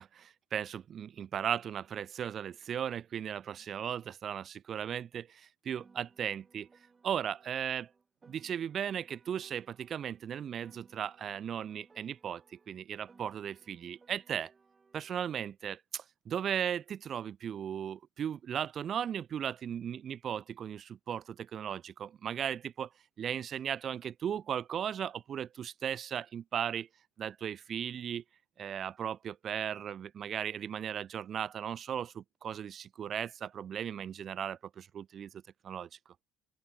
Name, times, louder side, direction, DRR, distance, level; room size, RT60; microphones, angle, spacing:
voice 1, 0.0-6.7 7.0-7.9 8.3-14.5 14.9-22.9 23.2-26.9 27.2-28.2 28.6-35.9, right 9 dB, 40° right, 2.0 m, -37 dB
Piano, 5.8-10.2 10.6-15.2, right 4 dB, 25° right, 6.5 m, -63 dB
open air
supercardioid pair, 110°, 0 cm